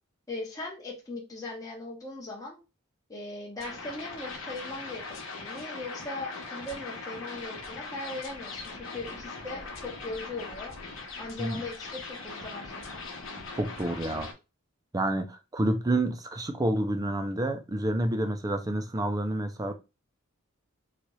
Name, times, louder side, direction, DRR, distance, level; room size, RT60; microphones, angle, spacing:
voice 1, 0.3-2.6 3.1-10.7 11.2-13.0, left 2 dB, 15° left, 0.8 m, -39 dB
sound 1, 3.6-14.3, left 3 dB, 75° left, 1.0 m, -40 dB
voice 2, 13.6-14.3 14.9-19.7, right 1 dB, 20° right, 0.5 m, -29 dB
4.1 x 2.4 x 3.0 m
head